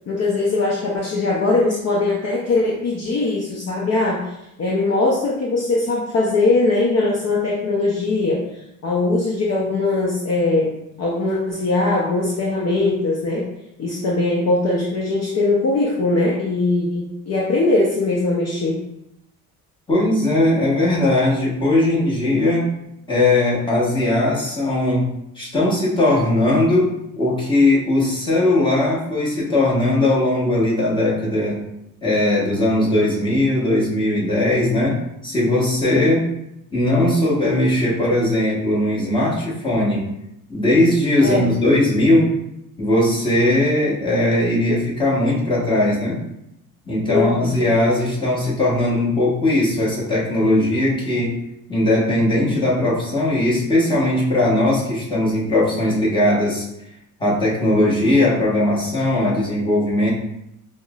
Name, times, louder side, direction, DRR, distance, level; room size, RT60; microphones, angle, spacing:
voice 1, 0.1-8.4 8.8-13.5 13.8-18.8 36.0-36.1 41.2-41.5 47.1-47.7, left 2 dB, 45° left, -4 dB, 0.6 m, -21 dB
voice 2, 19.9-22.7 23.1-25.1 25.3-31.6 32.0-36.3 36.7-40.1 40.5-42.3 42.8-46.2 46.9-51.4 51.7-56.7 57.2-60.1, left 1 dB, 15° left, -6 dB, 1.1 m, -19 dB
5.3 x 2.1 x 2.3 m, 0.83 s
cardioid pair, 115°, 37 cm